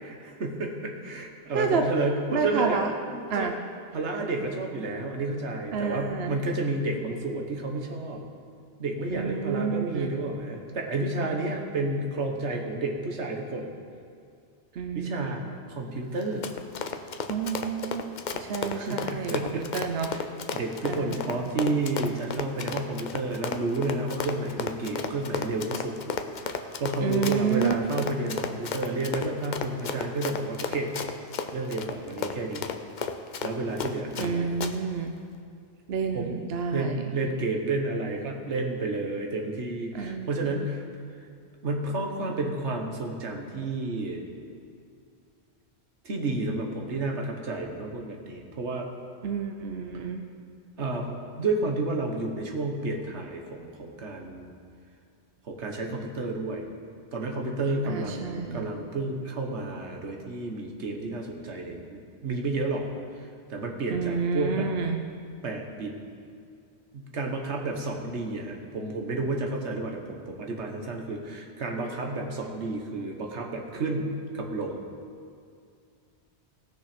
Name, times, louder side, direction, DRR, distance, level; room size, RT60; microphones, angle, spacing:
voice 1, 0.0-2.8 3.1-3.5 3.9-8.2 8.8-13.7 14.9-15.4 15.7-16.5 18.6-19.7 20.0-20.2 20.5-26.0 26.5-30.9 31.5-32.7 33.4-34.5 36.1-36.3 36.7-40.8 41.6-44.2 46.0-48.9 50.8-54.5 55.4-56.7 57.1-62.9 63.1-64.7 65.4-65.9 66.9-74.8, right 2 dB, 80° right, 2 dB, 1.6 m, -31 dB
voice 2, 2.3-2.9 3.3-3.5 5.7-6.4 9.1-10.1 14.8-15.4 17.3-18.1 18.5-20.1 20.8-21.5 27.0-27.7 34.1-35.1 35.9-37.1 39.9-40.7 49.2-50.2 57.8-58.7 63.9-65.0, right 6 dB, 65° right, 4 dB, 0.9 m, -29 dB
Run, 16.2-34.3 34.6-34.7, left 5 dB, 50° left, 0.7 m, -33 dB
17.5 x 6.4 x 5.1 m, 2.4 s
omnidirectional pair, 1.2 m